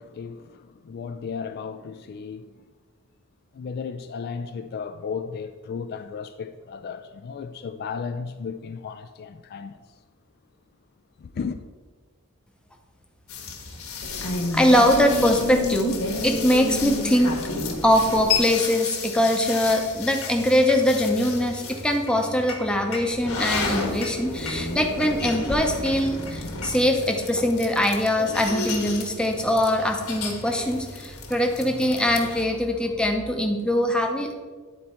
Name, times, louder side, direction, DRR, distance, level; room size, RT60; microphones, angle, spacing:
voice 1, 0.0-2.7 3.5-10.0 11.2-11.6, left 5 dB, 50° left, 0.3 m, -35 dB
sound 1, 13.3-32.4, left 3 dB, 75° left, 1.3 m, -31 dB
voice 2, 14.2-16.0 16.2-17.4 17.8-34.3, left 1 dB, 5° left, 0.7 m, -22 dB
9.6 x 4.2 x 4.3 m
head